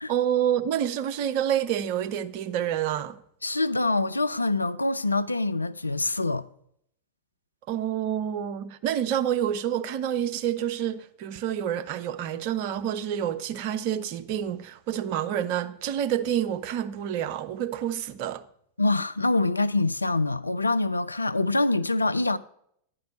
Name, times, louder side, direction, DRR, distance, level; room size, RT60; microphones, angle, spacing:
voice 1, 0.1-3.2 7.7-18.4, right 10 dB, 45° right, 0.6 m, -28 dB
voice 2, 3.4-6.4 18.8-22.4, left 2 dB, 80° left, 0.3 m, -25 dB
10.5 x 4.7 x 6.2 m
figure-of-eight pair, 90°, 0 cm